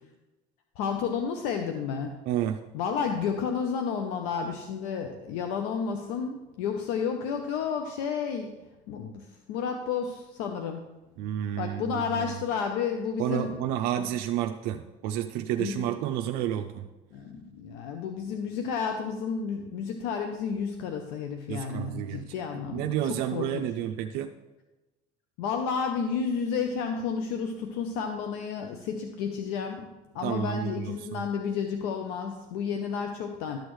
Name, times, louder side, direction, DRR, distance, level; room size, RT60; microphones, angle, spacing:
voice 1, 0.8-2.2 2.7-8.5 8.9-10.9 11.6-13.6 15.6-15.9 17.1-23.6 25.4-29.9 30.1-33.6, left 6 dB, 80° left, 5 dB, 0.7 m, -31 dB
voice 2, 2.3-2.6 11.2-12.3 13.2-16.9 21.5-22.3 22.7-24.3 30.2-31.2, right 11 dB, 70° right, 5 dB, 0.5 m, -30 dB
12.0 x 6.3 x 3.1 m, 1.1 s
supercardioid pair, 100°, 16 cm